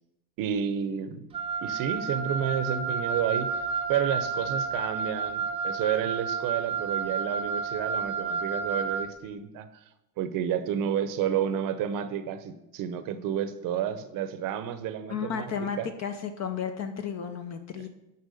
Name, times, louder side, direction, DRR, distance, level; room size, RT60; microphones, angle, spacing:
voice 1, 0.4-1.2 1.6-3.5 3.9-9.8 10.2-15.9, right 9 dB, 50° right, 11 dB, 0.7 m, -30 dB
Wind instrument woodwind instrument, 1.3-9.1, right 5 dB, 15° right, 0.3 m, -31 dB
voice 2, 15.1-17.9, left 7 dB, 35° left, 7 dB, 0.6 m, -33 dB
6.7 x 4.5 x 6.4 m, 0.91 s
supercardioid pair, 115°, 44 cm